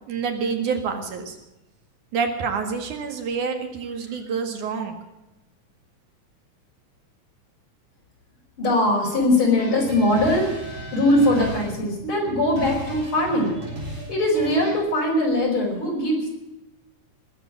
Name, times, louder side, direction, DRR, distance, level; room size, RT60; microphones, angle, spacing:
voice 1, 0.1-1.4 2.1-5.0, right 5 dB, 85° right, 5 dB, 3.3 m, -27 dB
voice 2, 8.6-16.3, left 1 dB, 40° left, -1 dB, 5.6 m, -21 dB
sound 1, 9.6-14.8, right 1 dB, 35° right, 6.8 m, -36 dB
19.0 x 8.3 x 8.9 m, 0.94 s
omnidirectional pair, 3.4 m